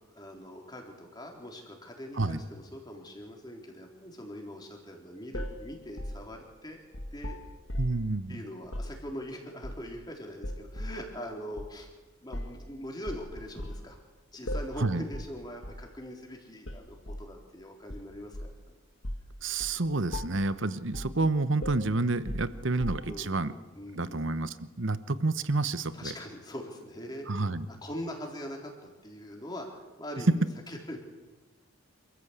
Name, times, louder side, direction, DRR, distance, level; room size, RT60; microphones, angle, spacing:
voice 1, 0.1-6.8 7.1-7.4 8.3-11.9 12.2-14.0 14.3-18.8 23.1-24.3 25.8-27.3 27.7-31.0, equal, 20° left, 1 dB, 4.0 m, -42 dB
sound 1, 5.3-8.1 8.6-9.0 9.6-10.1 10.4-11.0 11.6-11.7 12.3-12.6 13.1-13.9 14.5-14.8 15.1-15.4 15.6-15.9 16.7-17.3 17.9-18.6 19.0-19.3 19.6-19.8 20.1-20.5 20.9-21.2 21.6-23.3, equal, 60° left, 1.9 m, -38 dB
voice 2, 7.8-8.4 14.8-15.0 19.4-23.5 23.9-26.1 27.3-27.7, right 3 dB, 55° right, 13 dB, 1.0 m, -29 dB
27.5 x 14.5 x 8.3 m, 1.2 s
head